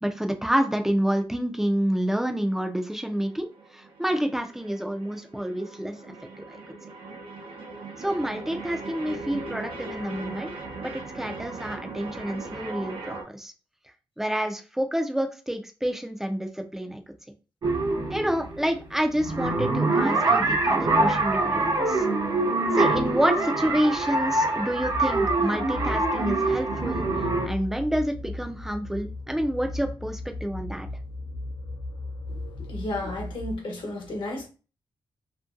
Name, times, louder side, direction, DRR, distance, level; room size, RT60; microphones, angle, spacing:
voice 1, 0.0-6.0 6.4-6.5 8.0-10.5 10.8-13.5 14.2-17.0 18.1-22.0 22.7-27.1 27.4-30.9, equal, 5° right, 0.4 m, -28 dB
sound 1, 1.9-13.2, right 3 dB, 90° right, 0.7 m, -39 dB
sound 2, 17.6-27.5, right 2 dB, 50° right, 0.7 m, -24 dB
sound 3, 24.7-33.6, left 2 dB, 80° left, 0.6 m, -36 dB
voice 2, 32.7-34.5, left 2 dB, 65° left, 1.0 m, -32 dB
2.7 x 2.6 x 2.4 m
wide cardioid pair, 135°, 9 cm